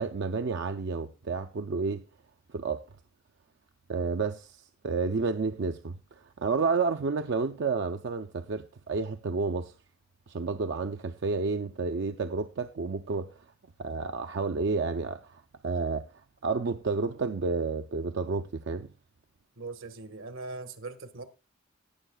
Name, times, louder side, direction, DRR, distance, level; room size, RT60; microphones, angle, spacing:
voice 1, 0.0-2.0 2.5-2.8 3.9-6.0 6.4-9.7 10.3-13.3 13.8-16.1 16.4-18.9, right 4 dB, 60° right, 0.5 m, -30 dB
voice 2, 19.6-21.2, right 3 dB, 80° right, 1.4 m, -40 dB
19.0 x 7.1 x 2.3 m
head